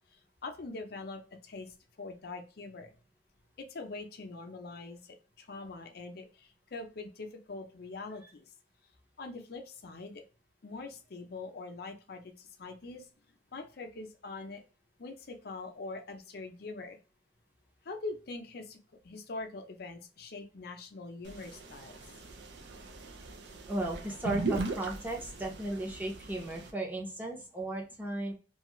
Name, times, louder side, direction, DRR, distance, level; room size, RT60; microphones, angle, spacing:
voice 1, 0.4-2.9 3.6-8.5 9.2-10.2 10.6-13.1 13.5-14.6 15.0-17.0 17.8-18.8 19.0-22.0, left 3 dB, 60° left, 5 dB, 0.6 m, -43 dB
sound 1, 21.3-26.7, right 3 dB, 75° right, 0.6 m, -39 dB
voice 2, 23.7-28.3, right 1 dB, 10° right, -1 dB, 0.7 m, -35 dB
2.6 x 2.4 x 3.0 m, 0.33 s
head